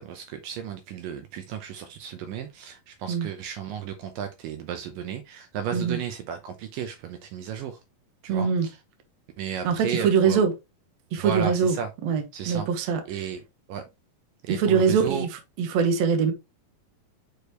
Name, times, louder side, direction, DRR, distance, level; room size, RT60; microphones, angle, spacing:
voice 1, 0.0-7.8 8.2-8.8 9.4-10.4 11.2-11.9 12.3-13.4 13.7-13.8 14.4-15.3, right 8 dB, 80° right, 2.2 m, -34 dB
voice 2, 8.3-8.7 9.6-10.5 11.1-11.8 12.0-13.0 14.5-15.3 15.6-16.3, right 6 dB, 60° right, 2.0 m, -23 dB
6.4 x 5.0 x 3.0 m
omnidirectional pair, 4.1 m